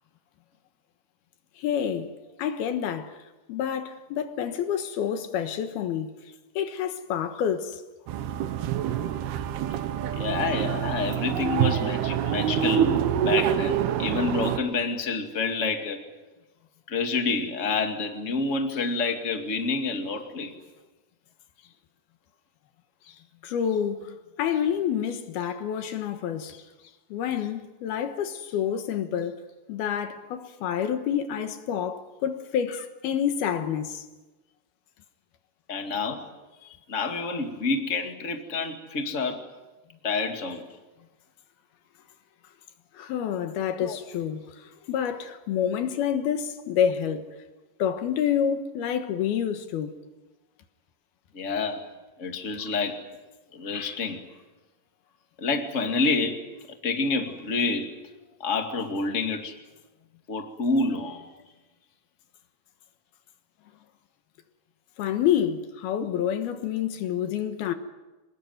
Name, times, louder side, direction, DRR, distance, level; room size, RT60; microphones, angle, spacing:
voice 1, 1.6-3.2 3.5-7.8 23.4-26.6 27.1-29.4 29.7-34.1 36.6-36.7 42.9-47.3 47.8-50.0 65.0-67.7, left 9 dB, 70° left, 3.0 m, -28 dB
sound 1, 8.1-14.6, right 9 dB, 70° right, 2.9 m, -26 dB
voice 2, 10.1-16.0 16.9-20.5 35.7-36.2 36.9-39.5 40.0-40.6 43.8-44.0 51.3-51.9 52.2-53.0 53.5-54.2 55.4-56.4 56.8-57.9 58.4-59.6 60.3-61.3 66.0-66.1, left 4 dB, 30° left, 1.4 m, -28 dB
27.0 x 19.5 x 9.3 m
omnidirectional pair, 5.0 m